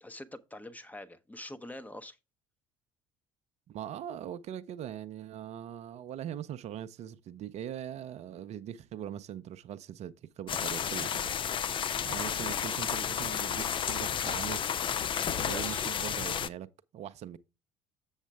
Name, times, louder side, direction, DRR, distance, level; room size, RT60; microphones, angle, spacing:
voice 1, 0.0-2.2 15.5-15.9, left 1 dB, 10° left, 0.8 m, -44 dB
voice 2, 3.7-11.3 12.0-14.6 15.4-16.7 16.9-17.4, right 10 dB, 50° right, 0.6 m, -41 dB
sound 1, 10.5-16.5, left 8 dB, 35° left, 0.5 m, -32 dB
7.3 x 7.1 x 3.4 m
figure-of-eight pair, 55°, 14 cm